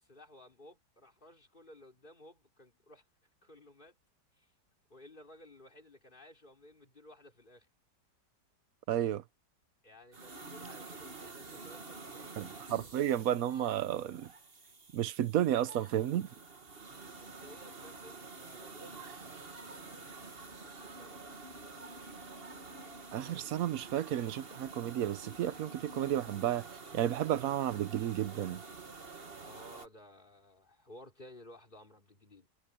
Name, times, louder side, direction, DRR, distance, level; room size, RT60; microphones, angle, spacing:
voice 1, 0.0-3.0 3.4-3.9 4.3-4.5 4.9-7.7 9.8-12.6 17.2-21.4 29.4-32.5, left 1 dB, 25° left, 4.0 m, -56 dB
voice 2, 8.9-9.2 12.4-14.3 14.9-16.3 23.1-26.6 26.9-28.6, right 11 dB, 65° right, 1.0 m, -32 dB
sound 1, 10.1-29.9, right 3 dB, 35° right, 1.9 m, -49 dB
omnidirectional pair, 1.9 m